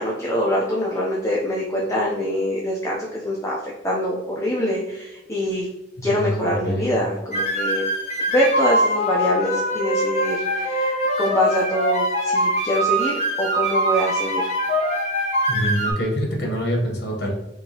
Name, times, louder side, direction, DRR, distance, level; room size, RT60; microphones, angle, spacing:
voice 1, 0.0-3.6 3.8-5.7 6.0-7.9 8.3-14.5, equal, 15° left, -4 dB, 0.6 m, -24 dB
voice 2, 6.0-7.0 15.5-17.3, equal, 80° left, -1 dB, 1.1 m, -25 dB
sound 1, 7.3-15.9, equal, 40° left, 1.0 m, -23 dB
4.5 x 2.8 x 2.8 m, 0.98 s
head